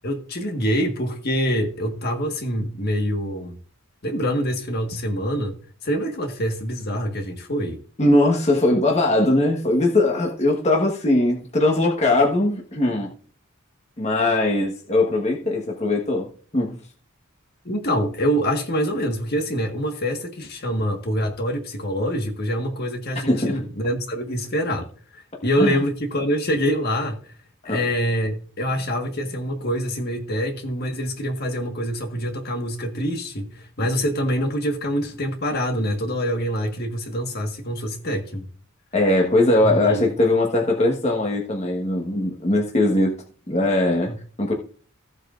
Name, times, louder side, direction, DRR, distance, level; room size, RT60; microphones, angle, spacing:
voice 1, 0.0-3.6 4.0-5.5 5.8-7.8 17.6-27.3 27.6-38.5 39.6-40.1 44.1-44.2, equal, 50° left, 1.6 m, -25 dB
voice 2, 8.0-13.1 14.0-16.8 23.3-23.6 25.6-25.8 27.6-27.8 38.9-44.5, left 2 dB, 30° left, 1.3 m, -20 dB
15.0 x 8.0 x 2.5 m
head